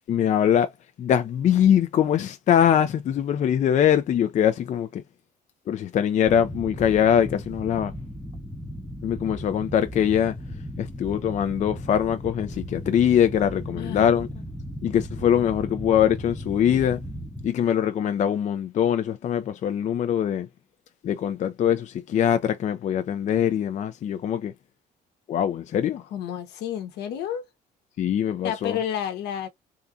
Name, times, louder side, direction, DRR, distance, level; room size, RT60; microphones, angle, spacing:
voice 1, 0.1-0.7 1.0-5.0 5.7-7.9 9.0-10.3 10.8-14.3 14.8-17.0 17.4-20.5 21.0-24.5 25.3-26.0 28.0-28.8, left 9 dB, 45° left, 0.5 m, -22 dB
sound 1, 6.2-17.5, equal, ahead, 0.7 m, -36 dB
voice 2, 13.7-14.1 26.1-27.4 28.4-29.5, left 9 dB, 80° left, 1.0 m, -30 dB
3.7 x 2.5 x 2.6 m
cardioid pair, 110°, 17 cm